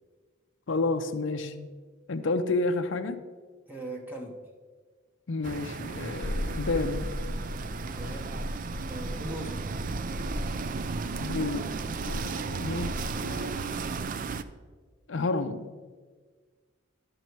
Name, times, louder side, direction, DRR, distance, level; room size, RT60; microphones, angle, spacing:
voice 1, 0.7-1.7 2.1-3.2 5.3-7.1 11.2-11.7 12.0-12.9 13.2-13.8 15.1-15.7, left 3 dB, 65° left, 7 dB, 0.5 m, -30 dB
voice 2, 3.7-4.4 7.8-9.6, right 1 dB, 10° right, 0 dB, 0.9 m, -40 dB
sound 1, 5.4-14.4, right 5 dB, 40° right, 0.3 m, -35 dB
sound 2, 6.2-14.0, left 1 dB, 40° left, 1.1 m, -37 dB
12.0 x 5.3 x 4.6 m, 1.5 s
head